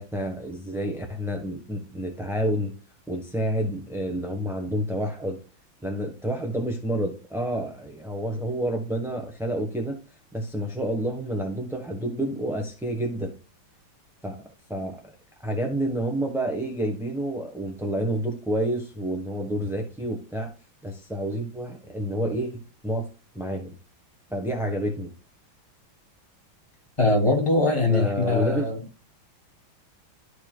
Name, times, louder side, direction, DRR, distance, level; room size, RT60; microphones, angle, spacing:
voice 1, 0.0-2.7 3.1-5.4 5.8-10.0 10.3-13.4 14.2-14.4 14.7-15.0 15.4-20.5 20.8-23.1 23.3-23.8 24.3-25.1 27.9-28.7, right 1 dB, ahead, 0.9 m, -29 dB
voice 2, 27.0-28.8, left 2 dB, 15° left, 2.6 m, -22 dB
13.5 x 4.7 x 2.4 m
omnidirectional pair, 2.2 m